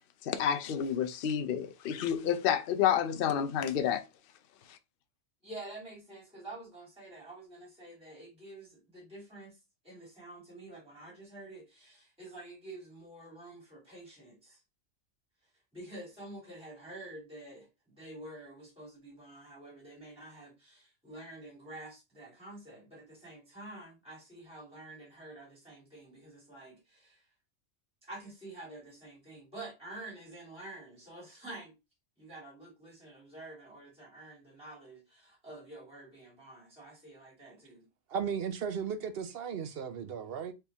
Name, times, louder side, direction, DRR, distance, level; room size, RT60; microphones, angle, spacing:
voice 1, 0.3-4.0, left 9 dB, 55° left, 0.7 m, -29 dB
voice 2, 5.4-9.5 9.8-14.6 15.7-27.1 28.1-31.7 32.2-37.8, right 2 dB, 5° right, 2.1 m, -48 dB
voice 3, 38.1-40.5, right 7 dB, 55° right, 0.8 m, -35 dB
4.4 x 3.4 x 3.4 m
omnidirectional pair, 1.3 m